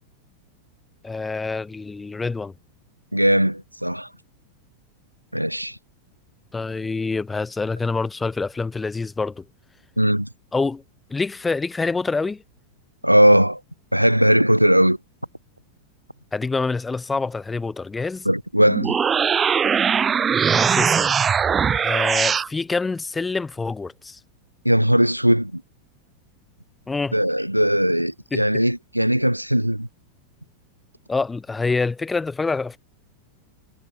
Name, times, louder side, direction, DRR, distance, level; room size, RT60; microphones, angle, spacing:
voice 1, 1.0-2.5 6.5-9.4 10.5-10.8 11.1-12.4 16.3-18.3 20.5-21.1 21.8-24.2 26.9-27.2 28.3-28.4 31.1-32.8, left 4 dB, 10° left, 3.0 m, -26 dB
voice 2, 3.1-4.1 5.3-5.8 10.0-10.3 13.0-13.6 13.9-15.0 18.3-18.9 24.6-25.6 27.1-29.9, equal, 90° right, 0.5 m, -19 dB
sound 1, 18.7-22.5, right 7 dB, 20° right, 2.1 m, -20 dB
figure-of-eight pair, 90°, 0 cm